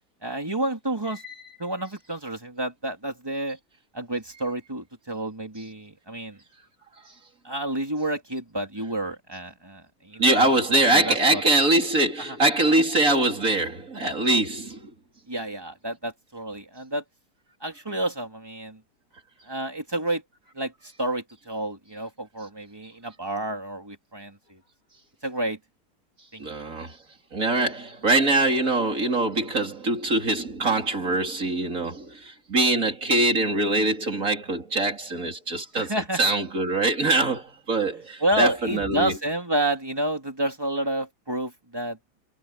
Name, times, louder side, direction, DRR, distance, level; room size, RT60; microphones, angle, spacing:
voice 1, 0.2-1.2 1.6-3.6 3.9-6.4 7.4-11.4 12.3-12.4 15.3-17.0 17.6-18.8 19.5-20.2 20.5-24.6 25.2-25.6 26.3-26.4 35.7-36.2 38.2-42.0, right 1 dB, 15° right, 3.4 m, -30 dB
voice 2, 10.2-14.9 26.4-27.0 27.3-39.2, right 2 dB, 45° right, 4.7 m, -23 dB
omnidirectional pair, 1.9 m